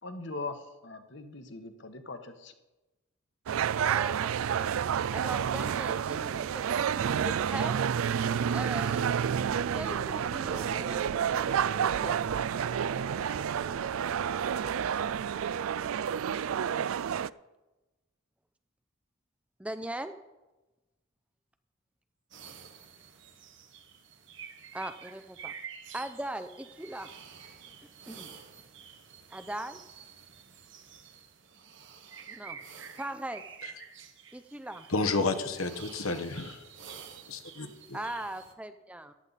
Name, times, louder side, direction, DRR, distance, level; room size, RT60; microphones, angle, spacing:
voice 1, 0.0-2.5, left 3 dB, 55° left, 8 dB, 1.2 m, -41 dB
sound 1, 3.5-17.3, right 8 dB, 80° right, 0.4 m, -29 dB
voice 2, 3.8-4.7 5.1-7.8 8.5-9.2 9.7-12.2 19.6-20.2 24.7-25.5 25.9-27.1 28.1-28.3 29.3-29.8 32.3-32.6 32.9-33.4 34.3-34.9 37.9-39.1, right 1 dB, 5° right, 9 dB, 0.5 m, -40 dB
sound 2, 8.3-15.5, equal, 20° left, 1.4 m, -49 dB
sound 3, 22.3-38.5, right 7 dB, 60° right, 1.3 m, -49 dB
voice 3, 34.9-36.6 37.3-38.0, left 3 dB, 80° left, 8 dB, 1.2 m, -31 dB
14.5 x 11.5 x 4.1 m, 1.1 s
head